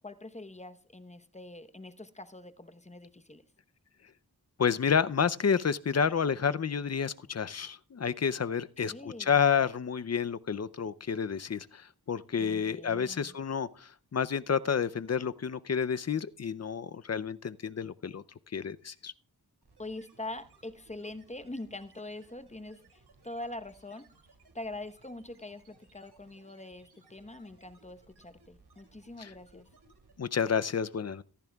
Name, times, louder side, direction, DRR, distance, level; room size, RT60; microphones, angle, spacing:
voice 1, 0.0-3.4 8.8-9.4 12.4-13.4 19.8-24.1 24.5-29.7, left 2 dB, 20° left, 9 dB, 1.0 m, -44 dB
voice 2, 4.6-18.2 18.5-19.1 29.2-29.3 30.2-31.2, left 6 dB, 40° left, 15 dB, 0.5 m, -30 dB
sound 1, 19.6-30.5, right 3 dB, 85° right, 2.9 m, -62 dB
17.0 x 14.5 x 2.3 m, 0.40 s
wide cardioid pair, 55°, 38 cm